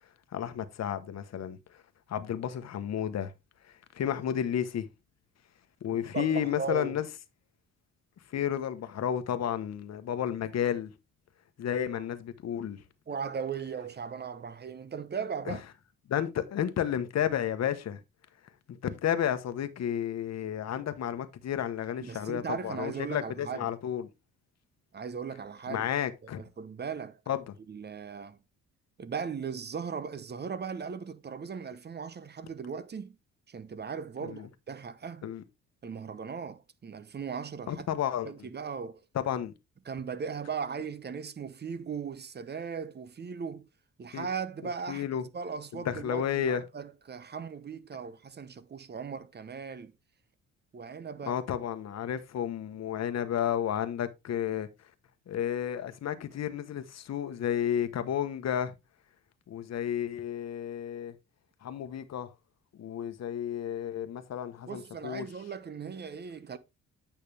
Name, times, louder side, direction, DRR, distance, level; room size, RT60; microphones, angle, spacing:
voice 1, 0.3-1.8 2.1-3.3 3.9-4.9 5.8-7.1 8.3-10.9 11.6-12.8 15.5-15.6 16.1-18.0 18.7-24.1 25.7-26.4 27.3-27.6 34.2-34.5 35.2-35.4 37.7-38.3 39.1-39.5 44.1-44.3 44.9-45.2 45.7-46.6 51.2-54.7 55.3-58.7 59.5-61.1 61.6-62.3 62.7-65.3, left 9 dB, 60° left, 1.1 m, -32 dB
voice 2, 6.0-7.0 11.9-12.0 13.1-15.6 22.0-23.7 24.9-25.9 26.4-27.2 27.7-28.4 29.0-33.2 33.5-35.3 35.8-37.9 38.2-39.0 39.9-43.7 44.0-49.9 50.7-51.4 64.6-66.6, right 6 dB, 35° right, 0.9 m, -38 dB
9.0 x 5.7 x 3.4 m
cardioid pair, 90°, 30 cm